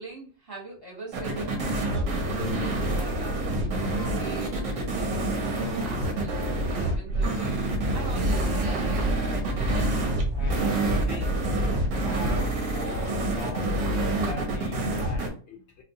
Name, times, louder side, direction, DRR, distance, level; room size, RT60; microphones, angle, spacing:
voice 1, 0.0-7.6 7.9-8.9, right 2 dB, 20° right, 1.3 m, -42 dB
sound 1, 1.1-15.3, right 2 dB, 85° right, 1.3 m, -27 dB
sound 2, 7.7-13.8, equal, 60° right, 0.6 m, -30 dB
voice 2, 10.3-15.8, left 3 dB, 70° left, 0.8 m, -41 dB
3.9 x 2.4 x 2.7 m
omnidirectional pair, 1.3 m